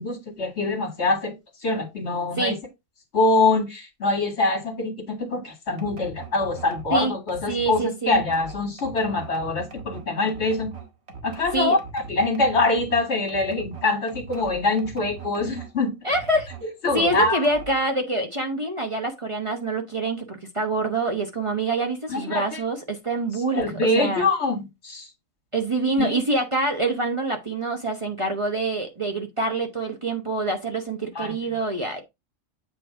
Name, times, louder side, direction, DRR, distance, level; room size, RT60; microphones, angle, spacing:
voice 1, 0.0-1.3 1.6-2.6 3.1-10.7 11.2-16.0 16.6-17.5 22.1-22.6 23.5-25.1 26.0-26.2 31.2-31.3, left 3 dB, 60° left, 2.2 m, -24 dB
sound 1, 5.8-15.7 16.1-17.9, right 4 dB, 55° right, 1.6 m, -41 dB
voice 2, 7.5-8.2 11.5-11.8 16.0-16.5 16.9-23.6 23.9-24.2 25.5-32.0, right 2 dB, 25° right, 1.0 m, -26 dB
8.0 x 3.2 x 4.7 m
omnidirectional pair, 1.3 m